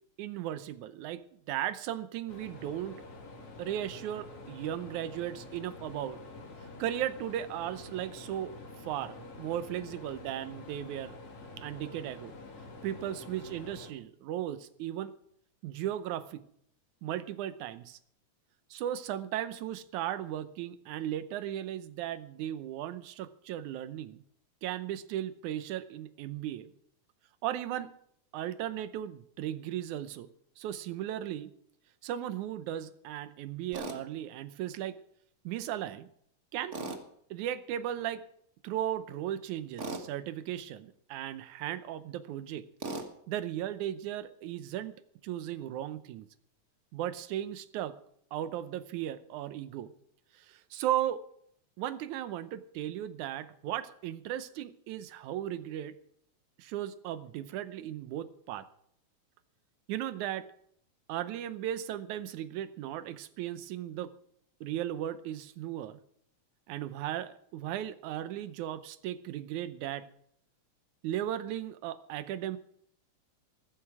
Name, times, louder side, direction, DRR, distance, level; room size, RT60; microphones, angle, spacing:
voice 1, 0.2-3.0 3.6-6.2 6.8-8.6 8.8-11.2 11.6-12.3 12.8-15.1 15.6-16.4 17.0-18.0 18.7-24.2 24.6-26.7 27.4-27.9 28.3-30.3 30.6-31.5 32.0-35.0 35.4-36.1 36.5-36.8 37.3-38.2 38.6-42.7 43.3-45.0 45.2-46.3 46.9-48.0 48.3-49.9 50.3-51.2 51.8-56.0 56.6-58.7 59.9-60.5 61.1-64.1 64.6-66.0 66.7-70.1 71.0-72.6, right 11 dB, 75° right, 13 dB, 2.2 m, -36 dB
sound 1, 2.3-13.9, left 2 dB, 50° left, 2.7 m, -48 dB
Tools, 33.7-34.0 36.7-37.0 39.8-40.1 42.8-43.1, right 3 dB, 35° right, 1.3 m, -37 dB
15.0 x 13.5 x 4.8 m, 0.67 s
omnidirectional pair, 3.5 m